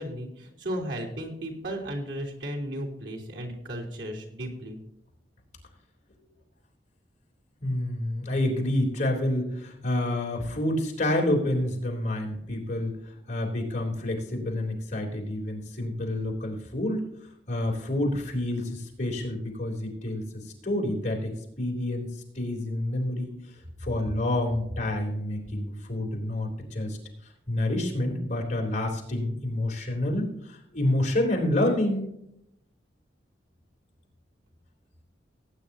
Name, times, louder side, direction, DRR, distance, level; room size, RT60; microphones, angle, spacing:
voice 1, 0.0-4.8, equal, 90° right, -1 dB, 3.5 m, -35 dB
voice 2, 7.6-17.1 17.5-23.3 23.8-27.0 27.5-32.1, left 1 dB, 40° left, -1 dB, 3.6 m, -28 dB
18.5 x 9.4 x 2.8 m, 0.76 s
head